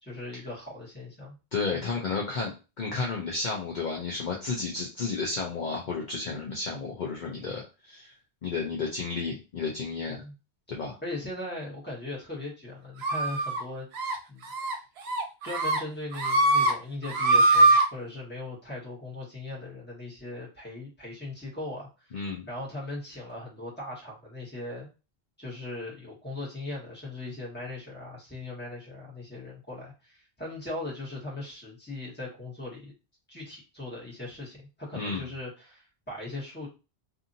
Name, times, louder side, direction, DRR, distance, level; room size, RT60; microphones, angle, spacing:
voice 1, 0.0-1.4 1.7-1.9 10.1-10.3 11.0-13.9 14.3-14.8 15.4-24.9 25.4-32.9 33.3-36.7, left 2 dB, 10° left, -5 dB, 1.3 m, -39 dB
voice 2, 1.5-8.1 8.4-10.2 10.7-11.0 22.1-22.4 35.0-35.3, left 4 dB, 55° left, -2 dB, 0.7 m, -32 dB
sound 1, 13.0-13.6 14.0-14.2 14.5-14.7 15.1-15.8 16.1-16.7 17.0-17.8, right 2 dB, 75° right, 0.9 m, -22 dB
2.7 x 2.6 x 2.6 m, 0.30 s
omnidirectional pair, 1.1 m